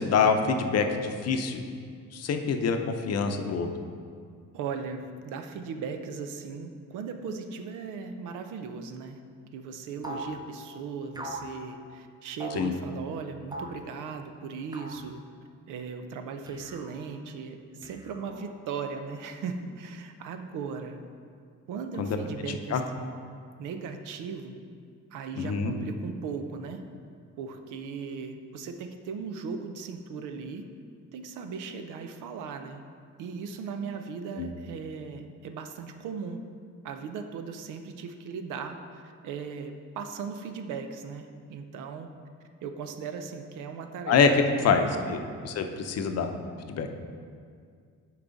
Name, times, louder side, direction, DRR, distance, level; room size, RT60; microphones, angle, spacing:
voice 1, 0.0-1.6 2.1-3.7 12.5-12.7 22.0-22.1 22.7-22.8 25.4-25.7 34.4-34.5 44.1-44.3 44.6-45.2 45.4-46.3 46.7-46.9, left 5 dB, 55° left, 6 dB, 0.7 m, -25 dB
voice 2, 4.5-9.2 9.5-15.3 15.7-21.0 21.7-23.2 23.6-24.6 25.1-26.8 27.4-30.7 31.1-32.8 33.2-36.4 36.8-42.1 42.6-45.2, right 5 dB, 90° right, 7 dB, 0.6 m, -38 dB
sound 1, 10.0-10.4 11.1-11.5 12.4-12.7 13.5-13.8 14.7-15.1 16.5-17.0 17.8-18.5, right 1 dB, 15° right, 0.6 m, -40 dB
8.4 x 4.8 x 3.9 m, 2.2 s
cardioid pair, 90°, 30 cm